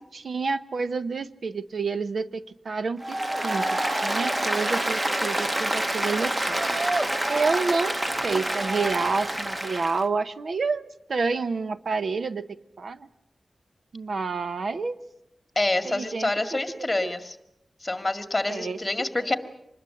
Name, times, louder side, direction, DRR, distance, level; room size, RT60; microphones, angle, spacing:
voice 1, 0.0-6.6 7.3-8.0 8.2-12.5 12.8-13.1 13.9-15.0 15.8-16.3 17.0-17.1 18.5-18.8, right 4 dB, 75° right, 12 dB, 0.8 m, -29 dB
Applause, 3.0-10.0, right 1 dB, 25° right, 1.2 m, -27 dB
voice 2, 15.6-17.4 17.8-19.3, left 2 dB, 20° left, 8 dB, 2.0 m, -27 dB
26.0 x 20.5 x 7.8 m, 0.83 s
wide cardioid pair, 95°, 0 cm